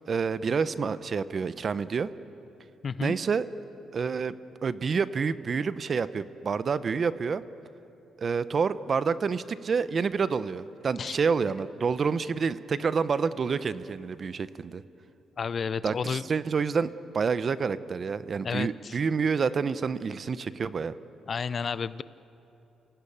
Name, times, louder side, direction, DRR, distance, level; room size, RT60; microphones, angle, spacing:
voice 1, 0.1-2.1 3.0-3.5 3.9-4.3 4.6-7.4 8.2-14.8 15.8-20.9, right 5 dB, 45° right, 15 dB, 0.8 m, -28 dB
voice 2, 2.8-3.1 11.0-11.2 15.4-16.2 18.4-19.0 21.3-22.0, left 6 dB, 45° left, 17 dB, 0.5 m, -31 dB
27.5 x 17.0 x 8.6 m, 2.9 s
cardioid pair, 90°, 0 cm